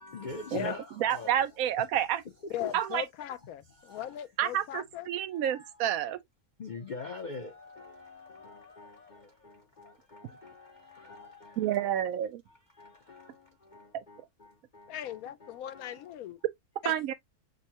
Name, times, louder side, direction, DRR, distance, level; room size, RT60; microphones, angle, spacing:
voice 1, 0.0-1.5 1.8-1.9 2.4-2.8 3.8-4.2 5.3-6.1 6.6-11.8 12.7-16.1, left 3 dB, 45° left, 0.6 m, -45 dB
voice 2, 0.5-2.2 2.7-3.0 4.4-6.2 11.6-12.4 13.9-14.0 16.8-17.1, right 11 dB, 75° right, 1.0 m, -29 dB
voice 3, 2.5-5.1 14.9-16.4 16.8-16.9, left 11 dB, 75° left, 1.0 m, -38 dB
6.4 x 2.1 x 2.8 m
omnidirectional pair, 1.6 m